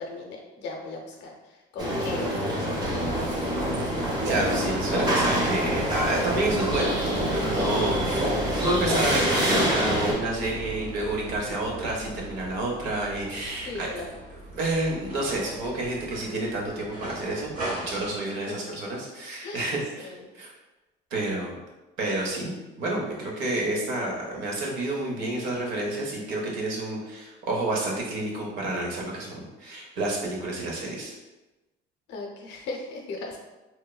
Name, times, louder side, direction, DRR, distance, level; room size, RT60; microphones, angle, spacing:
voice 1, 0.0-1.3 1.7-3.0 13.7-14.1 18.3-18.6 19.4-19.7 20.0-20.2 32.1-33.4, left 3 dB, 65° left, 0 dB, 0.6 m, -37 dB
sound 1, 1.8-10.1, equal, 20° right, 0.5 m, -26 dB
sound 2, 2.8-18.2, right 1 dB, 40° right, 1.0 m, -38 dB
voice 2, 3.5-3.9 4.2-8.3 8.6-13.9 14.3-17.5 17.9-20.5 21.1-21.6 22.0-31.2, right 2 dB, 85° right, -2 dB, 0.7 m, -29 dB
3.0 x 2.1 x 2.3 m, 1.1 s
cardioid pair, 150°, 19 cm